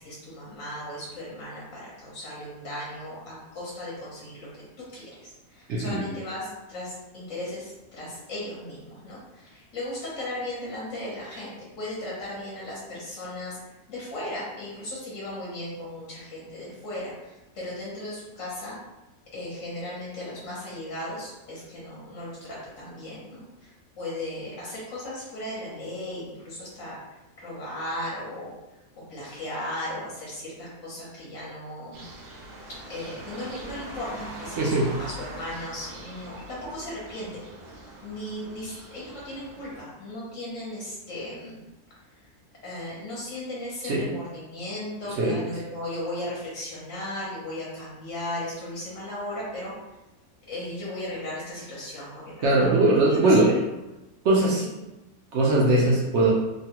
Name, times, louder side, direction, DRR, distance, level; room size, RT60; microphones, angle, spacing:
voice 1, 0.0-4.6 4.9-13.6 13.9-18.8 19.3-27.0 27.4-28.5 29.1-32.0 32.9-37.5 38.0-41.6 42.6-49.7 50.5-52.7 53.0-53.6 54.6-54.7 55.6-55.8, left 1 dB, 60° left, -6 dB, 1.2 m, -36 dB
voice 2, 5.7-6.1 34.6-34.9 43.8-44.1 45.2-45.4 52.4-53.5 54.2-54.6 55.3-56.3, right 2 dB, 65° right, -3 dB, 0.7 m, -20 dB
sound 1, 31.9-39.8, right 1 dB, 85° right, 1.2 m, -42 dB
3.1 x 2.2 x 2.9 m, 1.0 s
omnidirectional pair, 1.6 m